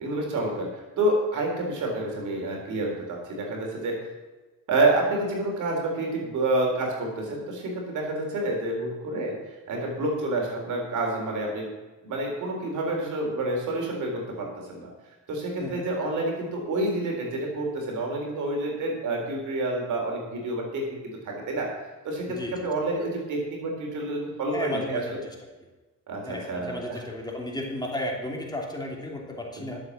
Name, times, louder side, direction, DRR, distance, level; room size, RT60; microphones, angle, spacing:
voice 1, 0.0-4.0 4.7-9.4 9.7-11.7 12.0-14.9 15.3-21.7 22.0-25.2 26.1-27.0 29.6-29.7, right 2 dB, 80° right, 0 dB, 3.9 m, -28 dB
voice 2, 22.3-22.7 24.5-25.3 26.2-29.8, left 1 dB, 15° left, -1 dB, 2.8 m, -34 dB
11.5 x 7.6 x 7.2 m, 1.2 s
cardioid pair, 90°, 30 cm